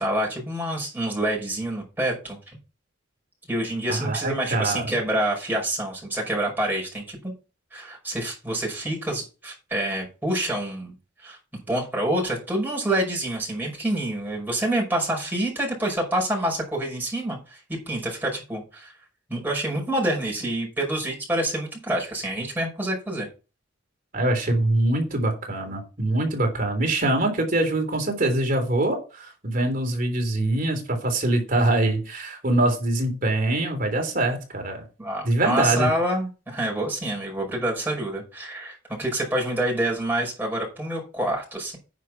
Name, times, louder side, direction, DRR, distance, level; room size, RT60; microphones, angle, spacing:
voice 1, 0.0-2.6 3.5-7.3 7.7-10.9 11.2-11.4 11.7-18.9 19.3-23.3 35.0-41.8, right 1 dB, 10° right, -2 dB, 5.5 m, -27 dB
voice 2, 3.9-4.9 24.1-34.8 35.2-35.9, right 1 dB, 45° right, 4 dB, 3.3 m, -24 dB
9.6 x 5.9 x 5.9 m, 0.32 s
head